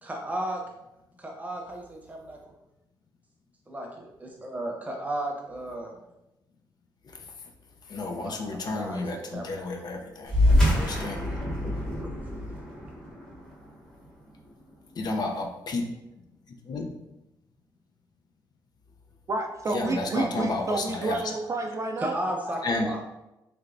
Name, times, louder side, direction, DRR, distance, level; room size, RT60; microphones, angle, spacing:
voice 1, 0.0-0.6 1.2-2.4 3.7-5.9 8.2-9.6 12.0-12.1 21.1-21.2 22.0-23.0, right 1 dB, 20° right, 0 dB, 0.8 m, -34 dB
voice 2, 7.9-10.4 10.7-11.2 15.0-15.9 16.5-16.9 19.7-21.2 22.6-23.0, left 2 dB, 55° left, 3 dB, 0.5 m, -31 dB
sound 1, 10.2-15.1, left 1 dB, 10° left, 1.0 m, -26 dB
voice 3, 19.3-22.1, right 3 dB, 40° right, 3 dB, 0.3 m, -30 dB
3.2 x 3.0 x 2.5 m, 0.92 s
cardioid pair, 90°, 8 cm